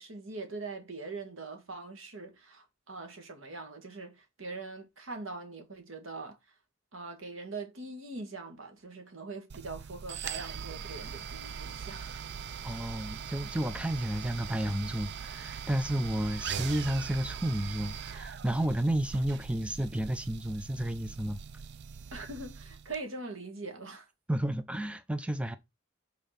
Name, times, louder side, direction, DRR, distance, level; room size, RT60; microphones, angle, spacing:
voice 1, 0.0-6.4 6.9-12.2 22.1-24.1, right 3 dB, 85° right, 1.8 m, -42 dB
sound 1, 9.5-23.0, right 7 dB, 60° right, 0.4 m, -41 dB
voice 2, 12.6-21.4 24.3-25.6, right 1 dB, 5° right, 0.5 m, -31 dB
5.4 x 4.1 x 5.8 m
head